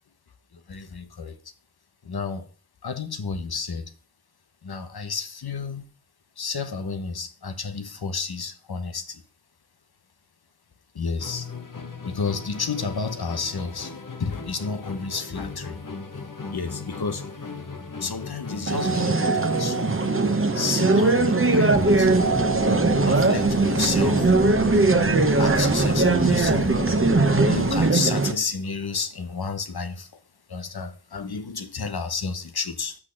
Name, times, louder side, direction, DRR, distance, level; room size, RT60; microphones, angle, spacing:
voice 1, 0.5-1.4 2.0-2.5 2.8-3.9 4.6-5.9 6.4-9.2 10.9-11.5 12.0-13.9 14.2-15.8 16.1-16.2 16.5-17.2 18.0-20.1 20.5-22.3 23.0-24.3 25.4-26.7 27.4-30.1 30.5-33.0, left 4 dB, 90° left, 1.0 m, -31 dB
Musical instrument, 11.2-27.9, left 4 dB, 60° left, 1.2 m, -37 dB
sound 1, 18.7-28.3, right 3 dB, 35° right, 1.0 m, -20 dB
sound 2, 21.7-27.9, left 2 dB, 25° left, 0.9 m, -32 dB
6.3 x 6.0 x 6.3 m
wide cardioid pair, 45°, 37 cm